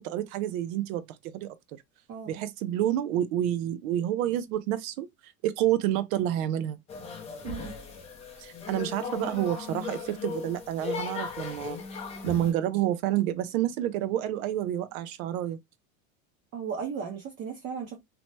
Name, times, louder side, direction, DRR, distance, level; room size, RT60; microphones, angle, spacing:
voice 1, 0.0-1.5 2.3-6.8 8.4-11.8 12.2-15.6, right 12 dB, 80° right, 0.6 m, -29 dB
voice 2, 2.1-2.5 7.4-7.8 16.5-18.0, right 6 dB, 30° right, 0.6 m, -36 dB
sound 1, 6.9-12.5, left 5 dB, 15° left, 0.5 m, -37 dB
2.8 x 2.0 x 3.1 m
cardioid pair, 160°, 41 cm